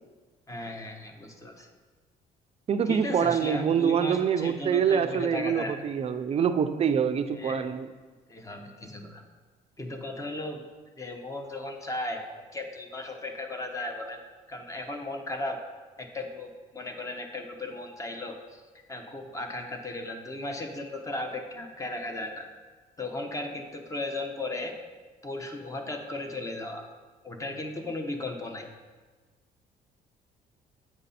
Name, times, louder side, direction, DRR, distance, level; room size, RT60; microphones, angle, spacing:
voice 1, 0.5-1.7 2.8-5.7 7.4-7.5 8.3-9.2 9.8-10.7 11.0-14.2 14.5-15.6 16.0-18.6 18.9-22.5 23.0-24.8 25.2-26.8 27.2-28.7, left 2 dB, 20° left, 4 dB, 1.0 m, -36 dB
voice 2, 2.7-7.9, right 7 dB, 35° right, 9 dB, 0.5 m, -25 dB
8.4 x 5.2 x 4.2 m, 1.4 s
cardioid pair, 110°, 17 cm